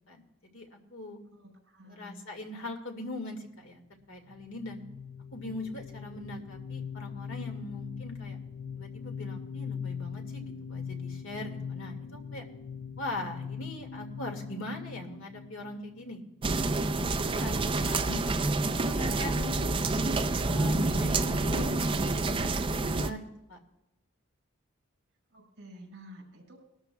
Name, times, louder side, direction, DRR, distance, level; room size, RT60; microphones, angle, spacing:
voice 1, 0.1-1.2 1.8-3.8 4.1-4.8 5.3-8.4 8.7-12.5 13.0-16.2 17.0-17.1 17.3-18.3 18.9-19.7 20.5-23.6, left 2 dB, 65° left, 3 dB, 2.1 m, -41 dB
voice 2, 1.3-2.2 25.3-26.6, equal, 60° right, 0 dB, 5.2 m, -50 dB
sound 1, 4.3-16.7, left 6 dB, 45° left, 0.4 m, -41 dB
sound 2, 16.4-23.1, right 2 dB, 25° right, 0.5 m, -28 dB
21.0 x 13.0 x 2.3 m, 0.91 s
head